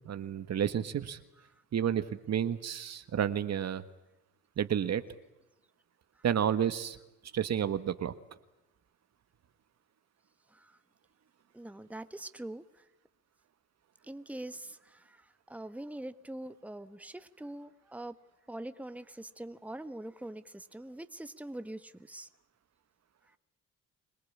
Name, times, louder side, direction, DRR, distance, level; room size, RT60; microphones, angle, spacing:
voice 1, 0.0-1.2 1.7-3.8 4.6-5.0 6.2-7.0 7.3-8.1, right 9 dB, 55° right, 11 dB, 1.5 m, -30 dB
voice 2, 11.5-12.8 14.0-18.1 18.5-22.3, right 1 dB, 5° right, 11 dB, 1.4 m, -44 dB
25.5 x 19.0 x 8.6 m, 0.96 s
supercardioid pair, 65°, 32 cm